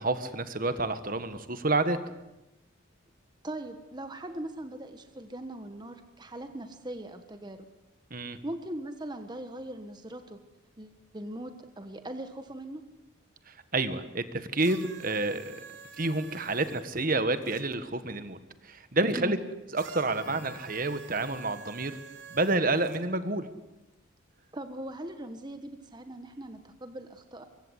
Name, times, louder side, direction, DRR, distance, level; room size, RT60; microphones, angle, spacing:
voice 1, 0.0-2.0 8.1-8.4 13.5-15.5 16.0-18.4 18.6-19.4 19.7-21.9 22.3-23.5, right 2 dB, 45° right, 11 dB, 1.6 m, -29 dB
voice 2, 3.4-7.7 8.4-10.4 10.8-11.5 11.8-12.8 19.2-19.4 24.5-27.5, right 1 dB, 20° right, 7 dB, 1.3 m, -40 dB
sound 1, 14.6-17.6 19.7-23.0 23.9-24.0, right 5 dB, 70° right, 2.9 m, -48 dB
24.0 x 23.5 x 8.2 m, 0.95 s
head